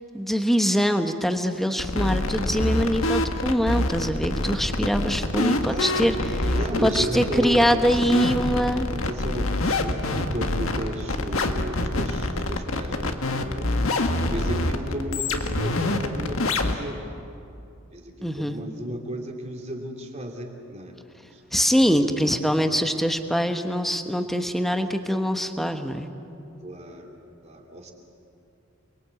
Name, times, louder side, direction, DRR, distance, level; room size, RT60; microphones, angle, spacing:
voice 1, 0.1-6.2 6.8-8.9 18.2-18.6 21.5-26.1, equal, ahead, 6 dB, 1.2 m, -23 dB
sound 1, 1.8-16.8, left 2 dB, 85° left, 1.6 m, -26 dB
voice 2, 5.6-8.3 8.9-13.7 14.2-17.0 17.9-21.0 21.3-21.4 22.2-22.3 26.6-27.1 27.4-27.9, equal, 30° right, 2 dB, 2.8 m, -34 dB
28.5 x 21.5 x 8.5 m, 2.7 s
head